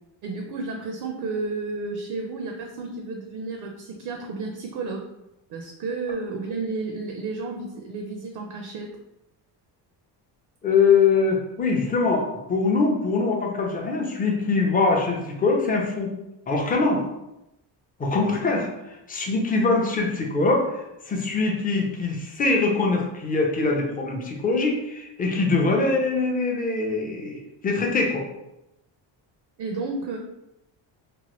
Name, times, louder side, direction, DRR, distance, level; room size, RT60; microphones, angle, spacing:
voice 1, 0.2-5.1 5.5-9.0 29.6-30.2, right 3 dB, 60° right, 1 dB, 0.5 m, -32 dB
voice 2, 10.6-16.1 16.5-17.0 18.0-18.7 19.1-20.8 21.1-28.2, left 3 dB, 20° left, 0 dB, 0.4 m, -23 dB
3.0 x 2.1 x 2.9 m, 0.89 s
cardioid pair, 150°, 46 cm